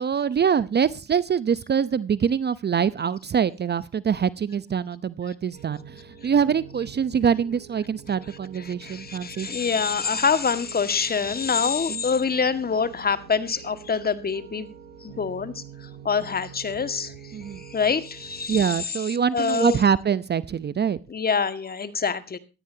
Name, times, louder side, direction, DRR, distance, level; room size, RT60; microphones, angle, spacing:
voice 1, 0.0-9.5 11.9-12.0 17.3-17.6 18.5-21.0, right 7 dB, 30° right, 0.8 m, -24 dB
Piano, 5.5-18.4, right 7 dB, 85° right, 7.4 m, -46 dB
voice 2, 8.6-14.7 15.0-19.0 19.3-19.8 21.1-22.4, left 5 dB, 30° left, 2.0 m, -26 dB
17.5 x 13.5 x 2.9 m
supercardioid pair, 85°, 32 cm